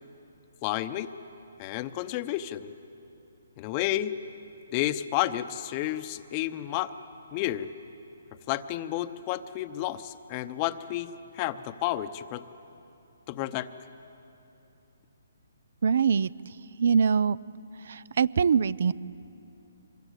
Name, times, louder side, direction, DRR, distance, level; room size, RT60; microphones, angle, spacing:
voice 1, 0.6-1.1 1.6-2.7 3.6-4.1 4.7-6.9 7.3-7.7 8.5-12.4 13.3-13.7, left 14 dB, 30° left, 12 dB, 0.8 m, -31 dB
voice 2, 15.8-16.3 16.8-17.4 17.9-18.9, right 6 dB, 60° right, 22 dB, 0.5 m, -23 dB
25.0 x 21.5 x 8.2 m, 3.0 s
hypercardioid pair, 145°, 0 cm